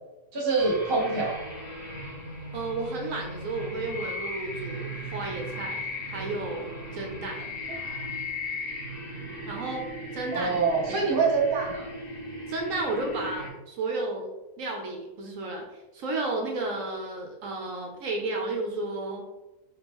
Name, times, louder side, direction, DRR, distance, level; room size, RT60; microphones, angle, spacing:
voice 1, 0.3-1.4 10.3-11.8, right 4 dB, 30° right, -3 dB, 0.4 m, -25 dB
sound 1, 0.6-13.5, equal, 60° left, 1.6 m, -37 dB
voice 2, 2.5-7.5 9.5-9.9 10.1-10.6 10.9-11.1 12.5-14.3 14.6-15.6 15.9-19.2, right 2 dB, 65° right, 1 dB, 1.0 m, -32 dB
3.5 x 3.5 x 3.0 m, 1.0 s
omnidirectional pair, 1.6 m